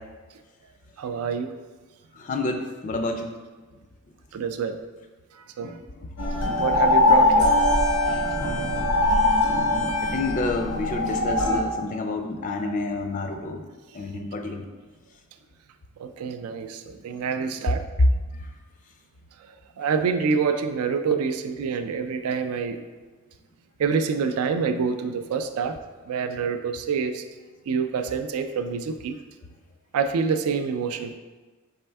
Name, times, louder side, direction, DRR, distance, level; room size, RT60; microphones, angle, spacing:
voice 1, 1.0-1.5 4.3-4.8 5.6-5.7 6.6-7.5 8.0-8.2 16.0-17.8 19.8-22.8 23.8-25.8 26.1-27.2 27.7-29.2 29.9-31.2, right 5 dB, 80° right, 9 dB, 0.3 m, -26 dB
voice 2, 2.2-3.3 5.6-5.8 7.7-7.8 8.1-9.1 9.5-13.7 13.9-14.7 18.0-18.4, left 2 dB, 35° left, 5 dB, 0.3 m, -28 dB
sound 1, 6.2-11.6, left 2 dB, 90° left, 0.8 m, -21 dB
4.3 x 3.4 x 3.3 m, 1.3 s
head